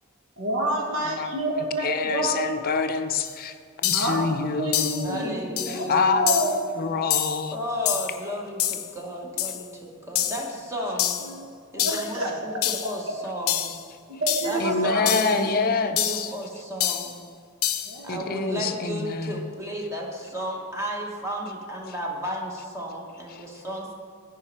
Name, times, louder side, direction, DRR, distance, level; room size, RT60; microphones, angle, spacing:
voice 1, 0.4-2.6 3.9-6.6 11.2-11.4 11.8-12.6 14.1-15.1 15.4-15.5 17.8-18.6, right 1 dB, 80° right, 0 dB, 1.5 m, -29 dB
voice 2, 1.8-5.3 5.7-6.2 6.8-7.6 14.6-16.3 18.1-19.5 23.3-23.5, left 4 dB, 45° left, 8 dB, 0.5 m, -26 dB
sound 1, 3.2-3.3 3.8-4.2 4.7-5.1 5.6-5.8 6.3-6.6 7.1-7.4 7.9-8.2 8.6-8.9 9.4-9.6 10.2-10.5 11.0-11.3 11.8-12.1 12.6-12.9 13.5-13.8 14.3-14.6 15.1-15.4 16.0-16.3 16.8-17.1 17.6-18.0, left 11 dB, 85° left, 0.6 m, -26 dB
voice 3, 5.0-6.5 7.5-11.2 11.7-13.7 14.4-17.1 18.0-23.9, equal, 15° right, -1 dB, 0.9 m, -33 dB
10.0 x 4.9 x 4.4 m, 2.2 s
head